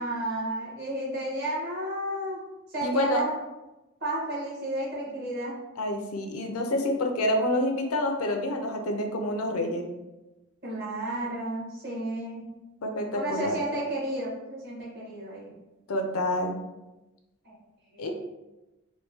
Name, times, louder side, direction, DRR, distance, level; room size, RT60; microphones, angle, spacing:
voice 1, 0.0-2.4 2.7-3.3 4.0-5.5 10.6-12.5 13.1-15.5 17.4-17.5 17.9-18.1, right 1 dB, 50° right, -6 dB, 1.3 m, -32 dB
voice 2, 2.8-3.2 5.8-9.9 12.8-13.5 15.9-16.6 18.0-18.1, left 1 dB, 85° left, 4 dB, 0.5 m, -28 dB
4.4 x 2.1 x 2.7 m, 1.0 s
head